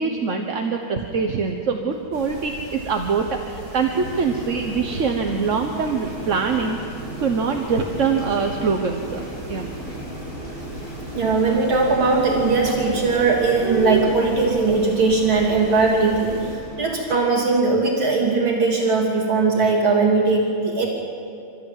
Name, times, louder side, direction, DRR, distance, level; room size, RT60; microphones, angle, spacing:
voice 1, 0.0-6.8 7.2-9.7, right 5 dB, 45° right, 3 dB, 1.3 m, -24 dB
sound 1, 2.1-16.6, right 3 dB, 25° right, 5.4 m, -36 dB
Boiling, 3.8-17.3, equal, 30° left, 7.3 m, -36 dB
voice 2, 11.1-20.9, right 3 dB, 70° right, -3 dB, 3.7 m, -19 dB
28.0 x 14.5 x 9.3 m, 2.5 s
omnidirectional pair, 2.2 m